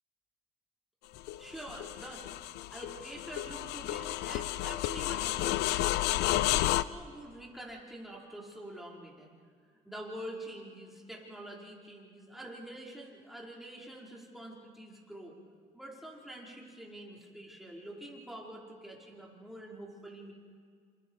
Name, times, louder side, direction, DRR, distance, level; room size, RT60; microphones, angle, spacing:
sound 1, 1.2-6.8, left 15 dB, 85° left, 0.6 m, -31 dB
voice 1, 1.4-2.3 2.7-5.7 6.2-9.3 9.9-15.4 15.7-20.3, right 1 dB, ahead, -3 dB, 5.2 m, -46 dB
27.5 x 27.5 x 4.9 m, 2.1 s
cardioid pair, 110°, 17 cm